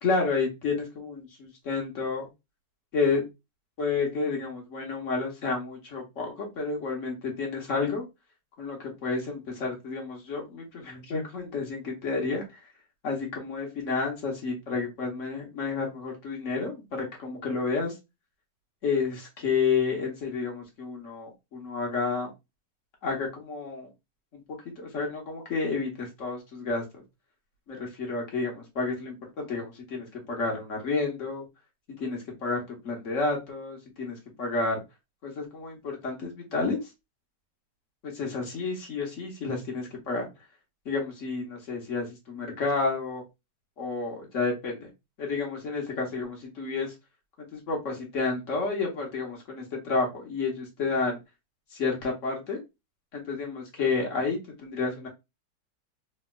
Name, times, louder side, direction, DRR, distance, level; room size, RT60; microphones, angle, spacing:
voice 1, 0.0-2.3 2.9-3.2 3.8-8.0 8.6-12.6 13.0-17.9 18.8-22.3 23.0-23.9 24.3-24.4 24.8-27.0 27.7-31.4 32.0-34.8 35.2-36.8 38.0-40.3 40.8-43.2 43.8-44.9 45.2-46.9 47.4-51.2 51.7-52.6 53.1-55.1, left 4 dB, 50° left, 0 dB, 1.3 m, -30 dB
3.5 x 3.1 x 2.3 m, 0.23 s
omnidirectional pair, 2.0 m